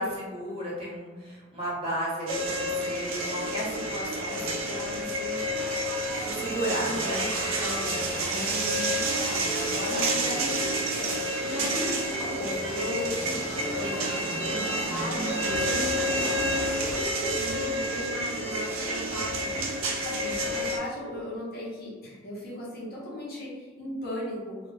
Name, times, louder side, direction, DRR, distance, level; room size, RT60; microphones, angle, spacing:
voice 1, 0.0-5.4 6.2-7.3 9.4-10.4, equal, 30° right, -8 dB, 0.9 m, -34 dB
sound 1, 2.3-20.8, right 1 dB, 80° right, 0.5 m, -29 dB
sound 2, 6.1-17.0, left 1 dB, 15° left, 0.6 m, -40 dB
voice 2, 6.8-7.2 7.6-9.5 9.9-10.6 11.4-13.4 13.7-14.1 14.5-24.6, equal, 50° left, -6 dB, 0.8 m, -37 dB
sound 3, 15.5-18.5 18.9-20.7 21.1-21.3, left 1 dB, 85° left, 0.4 m, -44 dB
2.3 x 2.2 x 3.2 m, 1.4 s
head